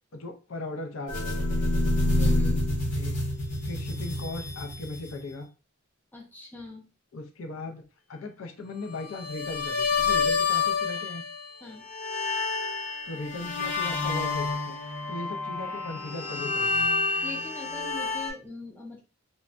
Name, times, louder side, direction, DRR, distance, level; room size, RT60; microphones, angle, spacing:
voice 1, 0.1-1.6 2.9-3.1 3.6-5.5 7.1-7.8 8.1-11.2 13.1-14.8 15.1-16.9, left 2 dB, 70° left, 5 dB, 0.5 m, -38 dB
sound 1, 1.1-5.3 9.1-11.5 11.8-18.3, left 3 dB, 40° left, 1.3 m, -28 dB
voice 2, 2.2-2.6 6.1-6.8 11.6-11.9 17.2-19.0, left 3 dB, 10° left, -1 dB, 0.6 m, -42 dB
3.1 x 2.2 x 2.5 m, 0.33 s
head